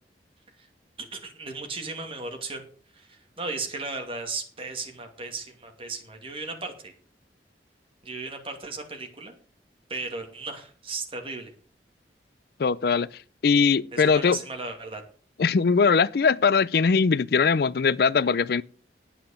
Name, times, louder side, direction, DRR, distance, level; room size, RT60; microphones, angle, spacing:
voice 1, 1.1-2.6 2.9-6.9 8.0-9.4 9.9-11.5 13.9-15.0, right 3 dB, 30° right, 2.5 m, -35 dB
voice 2, 12.6-13.1 13.4-14.4 15.4-18.6, left 5 dB, 60° left, 0.5 m, -21 dB
9.7 x 8.8 x 6.6 m
head